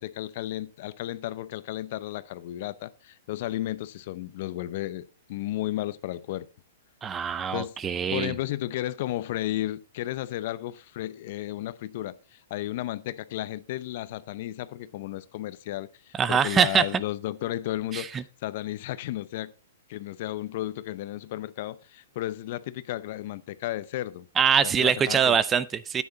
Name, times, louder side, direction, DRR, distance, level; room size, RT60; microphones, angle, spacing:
voice 1, 0.0-6.5 7.5-19.5 19.9-24.3 24.6-25.4, left 14 dB, 55° left, 0.7 m, -33 dB
voice 2, 7.0-8.3 16.1-16.9 17.9-18.2 24.4-26.0, right 7 dB, 20° right, 0.6 m, -23 dB
9.6 x 9.4 x 4.0 m
hypercardioid pair, 140°, 0 cm